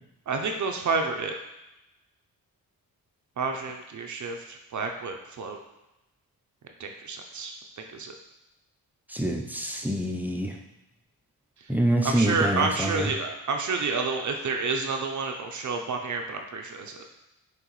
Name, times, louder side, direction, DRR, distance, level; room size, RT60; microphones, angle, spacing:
voice 1, 0.3-1.4 3.4-5.6 6.8-7.5 7.9-8.1 12.0-16.9, right 4 dB, 55° right, 3 dB, 0.6 m, -29 dB
voice 2, 9.1-10.6 11.7-13.1, right 1 dB, 5° right, 2 dB, 0.5 m, -26 dB
5.6 x 3.1 x 3.0 m, 0.94 s
cardioid pair, 80°, 36 cm